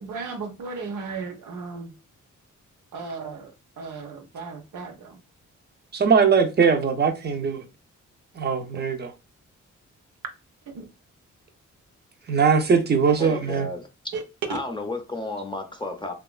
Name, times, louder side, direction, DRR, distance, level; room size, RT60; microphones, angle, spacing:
voice 1, 0.0-1.9 2.9-3.5 3.8-5.2 10.7-10.9 14.1-14.2, right 4 dB, 85° right, 0.7 m, -35 dB
voice 2, 5.9-7.6 8.4-9.1 12.3-13.7, right 6 dB, 35° right, 0.5 m, -21 dB
voice 3, 13.2-13.9 14.5-16.1, left 2 dB, 15° left, 0.4 m, -32 dB
2.9 x 2.3 x 2.3 m
cardioid pair, 85°, 30 cm